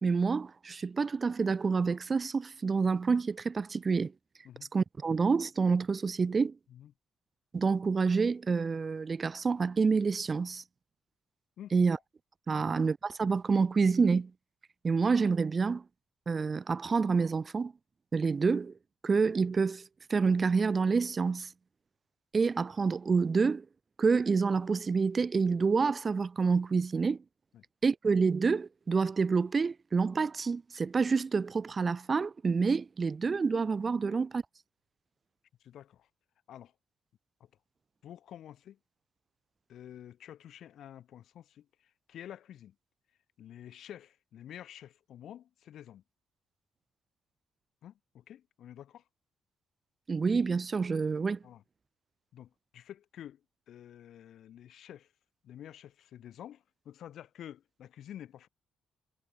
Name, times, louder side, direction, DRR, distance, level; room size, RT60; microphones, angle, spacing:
voice 1, 0.0-4.1 4.7-6.5 7.5-10.6 11.7-12.0 12.5-14.3 14.8-15.8 16.3-17.7 18.1-18.7 19.0-19.8 20.1-21.5 22.3-23.6 24.0-27.2 27.8-34.4 50.1-51.4, right 5 dB, 35° right, 2.4 m, -28 dB
voice 2, 35.6-36.1 36.5-36.7 38.0-38.8 39.7-41.6 42.1-42.7 43.4-46.0 47.8-49.0 51.4-51.6 52.3-53.4 53.7-55.1 55.4-58.5, left 11 dB, 70° left, 4.9 m, -49 dB
cardioid pair, 90°, 0 cm